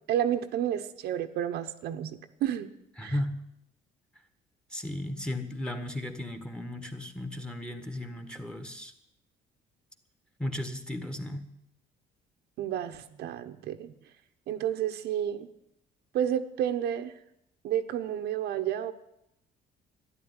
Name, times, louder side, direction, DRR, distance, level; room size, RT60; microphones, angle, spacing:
voice 1, 0.1-2.7 3.0-3.1 12.6-13.9 14.5-15.5 16.1-17.1 17.6-18.9, right 10 dB, 75° right, 7 dB, 1.1 m, -30 dB
voice 2, 3.0-3.4 4.7-8.9 10.4-11.5, left 1 dB, 5° left, 8 dB, 1.7 m, -35 dB
12.5 x 11.0 x 9.8 m, 0.81 s
cardioid pair, 110°, 17 cm